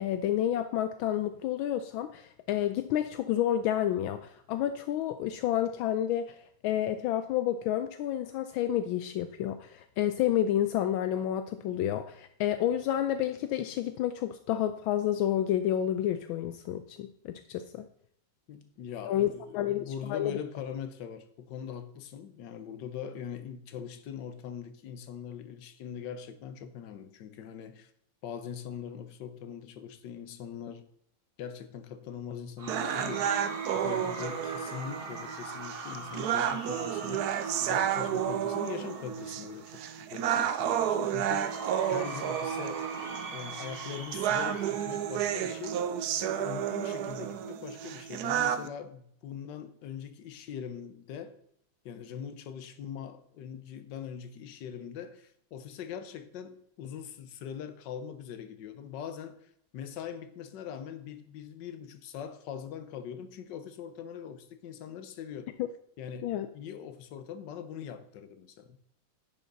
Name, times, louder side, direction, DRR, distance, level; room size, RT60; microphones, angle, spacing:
voice 1, 0.0-6.4 6.6-17.9 19.0-19.3 19.5-20.4 66.2-66.5, left 11 dB, 80° left, 1.4 m, -30 dB
voice 2, 18.5-27.9 28.2-30.9 31.4-33.3 33.7-42.8 43.3-51.4 51.8-65.6 66.0-68.8, left 8 dB, 65° left, 1.5 m, -42 dB
Cheering / Crowd, 32.6-39.9 41.2-45.9, right 3 dB, 35° right, 1.1 m, -42 dB
sound 1, 32.7-48.7, right 9 dB, 70° right, 1.0 m, -31 dB
10.0 x 7.7 x 4.0 m
omnidirectional pair, 2.2 m